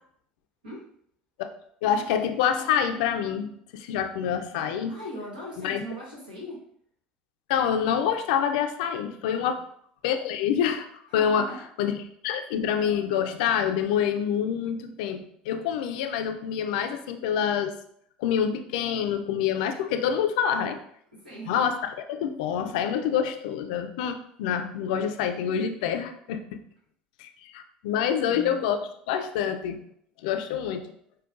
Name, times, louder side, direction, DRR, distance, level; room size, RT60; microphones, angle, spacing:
voice 1, 1.8-5.0 5.6-5.8 7.5-9.6 10.0-10.9 11.1-11.5 11.8-12.0 12.2-17.7 18.2-20.8 21.5-21.8 22.1-26.6 27.2-29.8 30.2-30.9, left 8 dB, 70° left, 7 dB, 0.4 m, -26 dB
voice 2, 4.9-6.6 9.3-9.6 11.1-11.6 20.7-20.8 21.1-21.5 28.2-28.6, equal, 90° right, -4 dB, 1.2 m, -40 dB
5.3 x 2.2 x 2.5 m, 0.67 s
hypercardioid pair, 70°, 5 cm